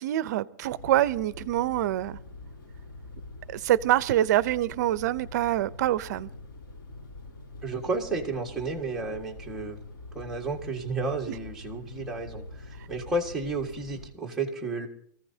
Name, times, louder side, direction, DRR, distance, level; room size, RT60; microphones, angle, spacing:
voice 1, 0.0-2.2 3.5-6.3 11.3-11.4, right 13 dB, 55° right, 18 dB, 0.6 m, -25 dB
sound 1, 0.6-14.1, left 2 dB, 85° left, 6.1 m, -45 dB
voice 2, 7.6-9.8 10.1-14.9, right 3 dB, 5° right, -2 dB, 1.7 m, -32 dB
24.0 x 15.0 x 2.8 m, 0.65 s
supercardioid pair, 165°, 11 cm